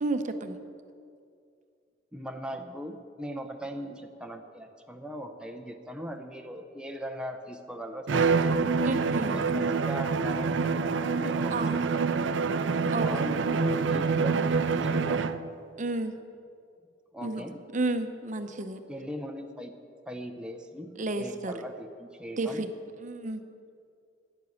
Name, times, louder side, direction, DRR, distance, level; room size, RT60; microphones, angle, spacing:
voice 1, 0.0-0.6 8.8-9.6 11.5-11.8 12.9-13.1 15.8-16.1 17.2-17.4 17.7-18.8 21.0-21.5 22.4-22.7 23.0-23.4, right 2 dB, 45° right, 8 dB, 0.7 m, -31 dB
voice 2, 2.1-8.6 9.2-12.4 12.9-15.3 17.1-17.6 18.9-19.7 20.1-22.7, equal, 5° right, 4 dB, 0.6 m, -39 dB
Bowed string instrument, 8.1-15.5, right 4 dB, 80° right, 0.5 m, -26 dB
10.5 x 10.0 x 7.1 m, 2.4 s
head